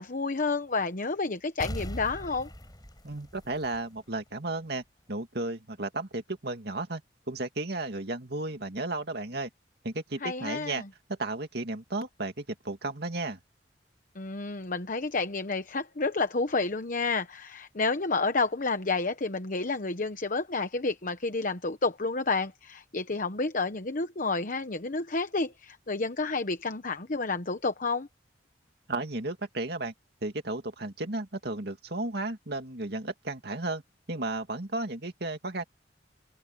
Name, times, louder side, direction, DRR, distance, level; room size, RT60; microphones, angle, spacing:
voice 1, 0.0-2.5 10.2-10.8 14.1-28.1, left 3 dB, 50° left, 1.0 m, -30 dB
sound 1, 1.6-4.2 4.5-4.6, equal, 20° left, 7.3 m, -40 dB
voice 2, 3.0-7.0 7.3-9.5 9.8-10.8 11.1-13.4 28.9-29.9 30.2-33.8 34.1-35.6, right 2 dB, 60° right, 2.5 m, -34 dB
open air
head